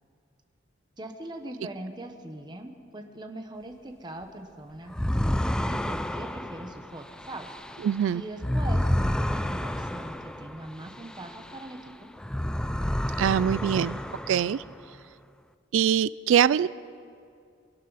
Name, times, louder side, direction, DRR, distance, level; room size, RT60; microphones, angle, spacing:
voice 1, 1.0-4.9 5.3-7.5 8.1-12.1, right 1 dB, 25° right, 4 dB, 1.0 m, -41 dB
sound 1, 4.9-11.8 12.2-14.9, left 1 dB, 5° left, 0.3 m, -30 dB
voice 2, 7.8-8.2 13.2-14.0 14.3-14.6 15.7-16.7, right 9 dB, 80° right, 19 dB, 0.3 m, -23 dB
23.0 x 12.0 x 4.0 m, 2.4 s
head